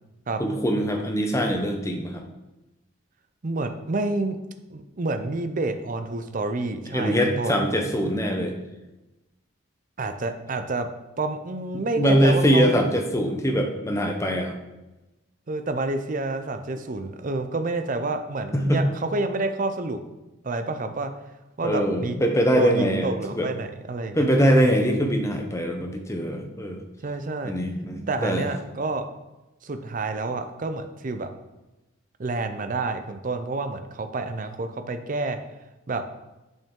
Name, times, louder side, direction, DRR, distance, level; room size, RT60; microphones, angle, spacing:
voice 1, 0.4-2.2 6.9-8.6 11.7-14.6 18.5-18.8 21.6-23.5 24.1-26.8 27.4-28.4, equal, 15° left, 3 dB, 0.7 m, -23 dB
voice 2, 3.4-4.4 4.7-7.6 10.0-10.9 11.2-12.9 15.5-20.0 20.4-21.1 21.6-22.2 22.6-24.9 27.0-27.5 28.1-29.0 29.6-31.3 32.2-35.4 35.9-36.0, right 3 dB, 40° right, 8 dB, 0.5 m, -29 dB
7.3 x 5.4 x 3.7 m, 1.0 s
head